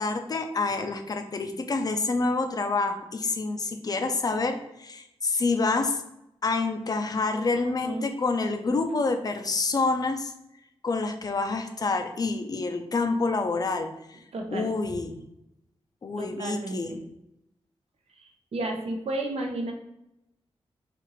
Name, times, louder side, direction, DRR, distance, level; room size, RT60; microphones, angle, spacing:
voice 1, 0.0-6.0 6.4-10.3 10.8-13.9 14.5-15.2 16.0-17.0, left 3 dB, 35° left, 6 dB, 0.5 m, -27 dB
voice 2, 7.5-8.1 14.3-14.7 16.2-17.0 18.5-19.7, right 2 dB, 70° right, 2 dB, 0.8 m, -32 dB
5.6 x 2.5 x 3.2 m, 0.84 s
wide cardioid pair, 165°, 11 cm